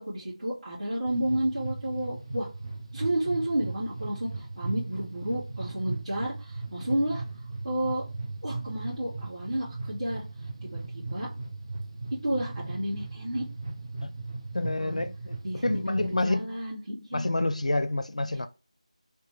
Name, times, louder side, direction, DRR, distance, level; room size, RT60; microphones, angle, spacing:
voice 1, 0.0-2.5 2.9-7.2 7.6-8.0 8.4-10.2 10.6-11.3 12.2-13.5 14.8-15.0 15.4-17.3, right 1 dB, 75° right, 2.1 m, -31 dB
sound 1, 1.1-16.2, right 3 dB, 45° right, 0.6 m, -37 dB
voice 2, 14.5-16.5 17.1-18.5, left 2 dB, 70° left, 0.4 m, -28 dB
3.2 x 2.8 x 3.4 m
figure-of-eight pair, 165°, 4 cm